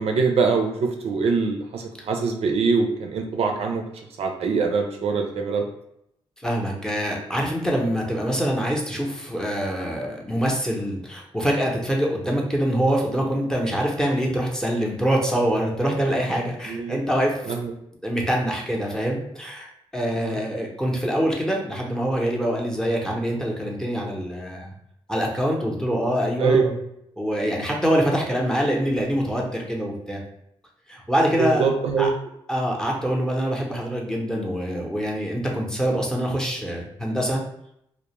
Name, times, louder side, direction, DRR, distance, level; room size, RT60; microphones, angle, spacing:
voice 1, 0.0-3.8 4.2-5.6 16.7-17.0 17.4-17.7 20.2-20.4 26.4-26.6 31.4-32.1, right 5 dB, 65° right, 3 dB, 0.4 m, -23 dB
voice 2, 6.4-17.6 18.0-24.7 25.1-26.8 27.2-30.2 30.9-31.7 32.0-32.1 32.5-37.4, equal, 5° left, -1 dB, 0.7 m, -25 dB
2.4 x 2.0 x 2.9 m, 0.76 s
cardioid pair, 60°, 11 cm